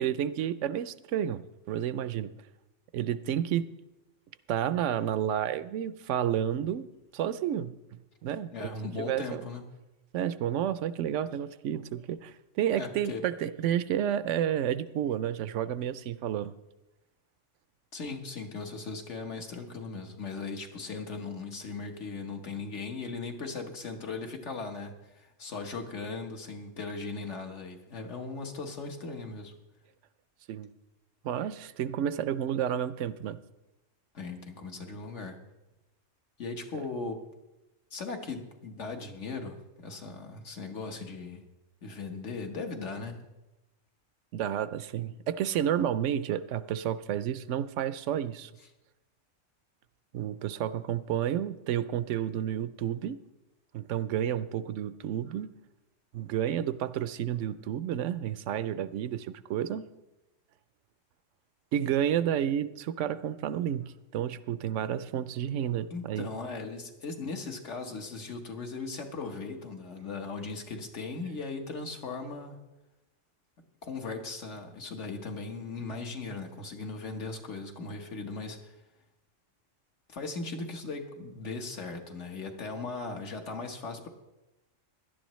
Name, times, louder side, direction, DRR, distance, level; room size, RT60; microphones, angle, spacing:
voice 1, 0.0-2.4 2.9-3.7 4.5-6.9 7.1-7.8 8.2-9.4 10.1-16.5 30.5-30.7 31.2-33.4 44.3-48.5 50.1-53.2 53.7-55.5 56.1-59.8 61.7-66.3, right 10 dB, 75° right, 15 dB, 0.9 m, -31 dB
voice 2, 8.5-9.6 12.7-13.3 17.9-29.5 34.1-35.4 36.4-37.2 37.9-41.5 41.8-43.2 65.9-72.6 73.8-78.8 80.1-84.1, left 3 dB, 70° left, 4 dB, 1.6 m, -38 dB
17.0 x 11.5 x 3.1 m, 1.0 s
omnidirectional pair, 1.3 m